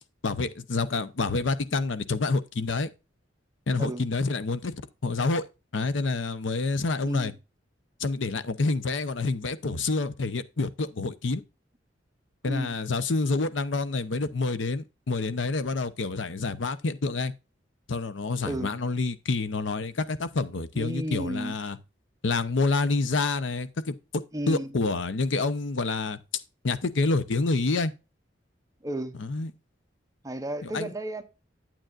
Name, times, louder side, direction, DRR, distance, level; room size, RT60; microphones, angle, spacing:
voice 1, 0.2-2.9 3.7-4.7 5.0-5.4 5.7-7.3 8.0-11.4 12.4-17.3 17.9-21.8 22.2-24.0 24.5-26.2 26.6-27.9 29.2-29.5 30.6-30.9, left 3 dB, 80° left, 0.7 m, -28 dB
voice 2, 7.0-7.3 12.4-12.7 18.4-18.7 20.7-21.6 24.3-24.7 28.8-29.2 30.2-31.2, right 1 dB, 20° right, 0.8 m, -33 dB
9.0 x 8.8 x 2.5 m
head